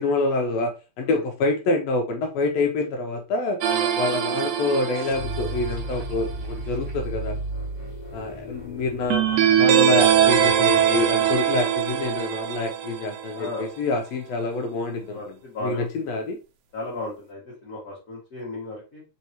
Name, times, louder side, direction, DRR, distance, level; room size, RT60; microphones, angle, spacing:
voice 1, 0.0-3.6 4.0-7.4 8.1-15.3 15.6-16.4, left 2 dB, 80° left, 1.6 m, -26 dB
sound 1, 3.6-5.9 9.1-13.5, right 9 dB, 80° right, 1.8 m, -22 dB
sound 2, 4.9-11.5, right 1 dB, 25° left, 1.4 m, -35 dB
voice 2, 13.3-13.7 15.1-16.2 16.7-19.0, left 2 dB, 45° left, 1.3 m, -35 dB
4.4 x 3.4 x 2.8 m
omnidirectional pair, 3.3 m